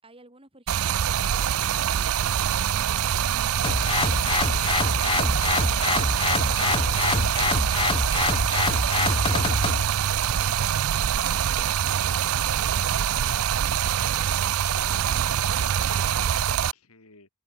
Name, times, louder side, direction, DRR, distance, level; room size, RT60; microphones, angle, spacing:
voice 1, 0.0-4.7, right 2 dB, 25° right, 8.0 m, -54 dB
Stream, 0.7-16.7, right 9 dB, 75° right, 0.5 m, -24 dB
sound 1, 3.6-9.8, left 3 dB, 25° left, 0.7 m, -26 dB
voice 2, 6.5-7.1 14.6-17.3, left 2 dB, 85° left, 4.7 m, -52 dB
head